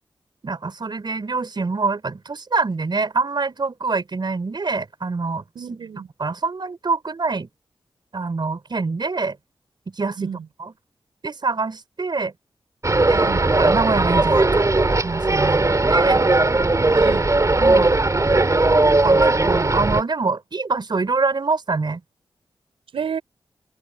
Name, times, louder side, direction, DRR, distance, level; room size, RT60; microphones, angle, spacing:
voice 1, 0.4-5.4 5.7-5.8 6.2-7.5 8.1-9.4 10.0-10.3 10.6-10.7 11.2-12.3 13.1-15.6 15.9-16.3 17.6-17.9 18.9-22.0, right 4 dB, 55° right, 4.9 m, -25 dB
voice 2, 5.6-6.1 10.2-10.5 13.1-13.4 16.9-17.3 22.9-23.2, right 7 dB, 85° right, 5.2 m, -30 dB
sound 1, 12.8-20.0, right 2 dB, 35° right, 3.6 m, -18 dB
cardioid pair, 40°, 9 cm